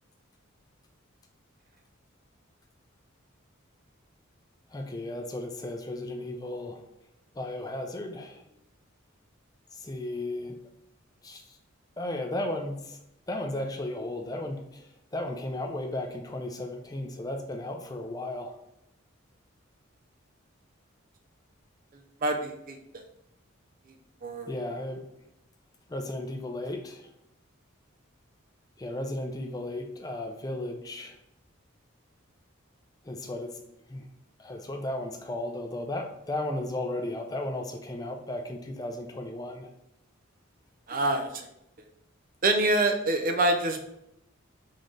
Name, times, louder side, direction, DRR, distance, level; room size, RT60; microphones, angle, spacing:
voice 1, 4.7-6.8 7.3-8.4 9.7-10.6 11.2-11.6 12.0-13.0 13.3-18.6 24.5-25.0 25.9-27.1 28.8-31.2 33.0-33.6 33.9-34.1 34.4-39.7, left 1 dB, 20° left, 3 dB, 0.5 m, -35 dB
voice 2, 22.2-22.8 24.2-24.5 40.9-41.3 42.4-43.9, right 2 dB, 40° right, 6 dB, 0.5 m, -25 dB
4.1 x 3.8 x 3.2 m, 0.81 s
head